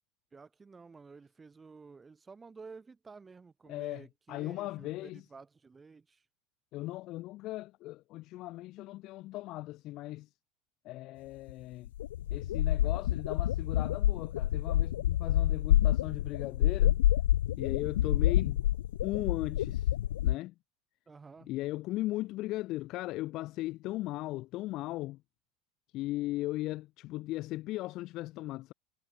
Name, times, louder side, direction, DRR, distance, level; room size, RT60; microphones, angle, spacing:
voice 1, 0.3-6.2 21.1-21.5, right 4 dB, 20° right, 6.7 m, -52 dB
voice 2, 3.7-5.2 6.7-10.3 10.8-11.9 12.3-17.0 17.6-18.7 19.0-19.9 20.2-20.5 21.5-25.2 25.9-28.7, left 18 dB, 55° left, 2.0 m, -37 dB
sound 1, 11.5-11.6 11.8-20.3, left 13 dB, 75° left, 0.7 m, -28 dB
hypercardioid pair, 75°, 0 cm